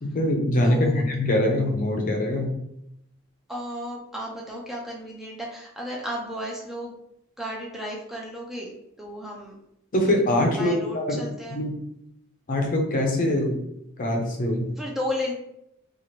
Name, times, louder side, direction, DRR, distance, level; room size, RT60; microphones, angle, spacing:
voice 1, 0.0-2.5 9.9-11.2 11.5-11.8 12.5-13.6 14.0-14.7, left 1 dB, 45° left, 2 dB, 0.6 m, -23 dB
voice 2, 0.6-1.0 3.5-6.9 7.4-9.6 10.5-11.6 14.8-15.3, equal, ahead, -3 dB, 0.4 m, -33 dB
2.9 x 2.4 x 2.9 m, 0.79 s
head